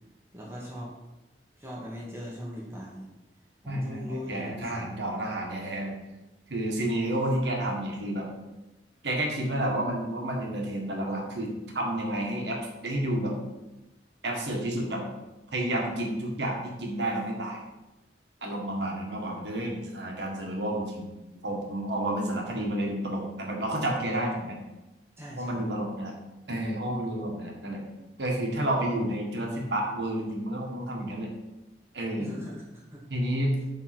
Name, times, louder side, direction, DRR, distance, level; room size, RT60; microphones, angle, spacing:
voice 1, 0.3-0.9 1.6-3.1 3.6-4.8 25.2-25.6 32.2-32.6 32.9-33.0, equal, 15° right, -4 dB, 1.4 m, -39 dB
voice 2, 3.7-5.9 6.5-8.3 9.0-13.3 14.2-15.0 15.5-17.6 18.4-21.2 21.4-24.6 25.4-26.1 26.5-27.8 28.2-31.3 31.9-32.3 33.1-33.6, right 1 dB, 75° right, 0 dB, 1.7 m, -30 dB
9.2 x 4.0 x 6.0 m, 1.0 s
head